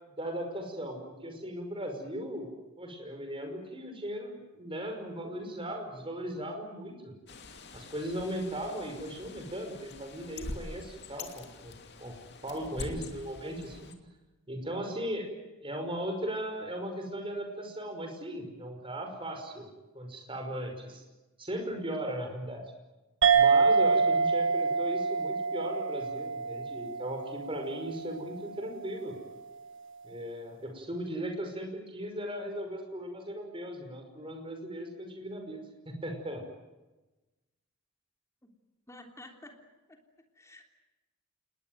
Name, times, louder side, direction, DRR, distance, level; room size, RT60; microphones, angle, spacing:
voice 1, 0.2-2.5 2.8-7.2 7.7-12.1 12.4-13.9 14.5-15.3 15.6-21.0 21.4-22.6 23.3-29.2 30.0-36.4, equal, 25° right, 4 dB, 5.5 m, -37 dB
Bird, 7.3-13.9, left 2 dB, 50° left, 2.7 m, -45 dB
sound 1, 23.2-28.1, right 5 dB, 60° right, 2.0 m, -26 dB
voice 2, 38.9-39.6 39.9-40.0 40.4-40.6, left 1 dB, 15° left, 3 dB, 3.3 m, -51 dB
28.0 x 20.5 x 9.2 m, 1.1 s
head